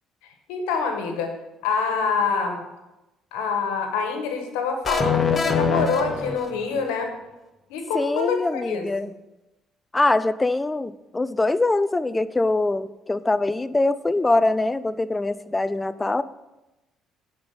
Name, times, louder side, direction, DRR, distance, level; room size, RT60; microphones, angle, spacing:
voice 1, 0.5-1.3 1.6-2.7 3.3-7.1 7.7-8.9, left 5 dB, 80° left, 5 dB, 1.4 m, -26 dB
sound 1, 4.8-6.8, left 5 dB, 35° left, 1.0 m, -24 dB
voice 2, 7.9-9.1 9.9-16.2, left 2 dB, 20° left, 15 dB, 0.5 m, -23 dB
10.0 x 4.5 x 6.9 m, 1.0 s
hypercardioid pair, 55°, 0 cm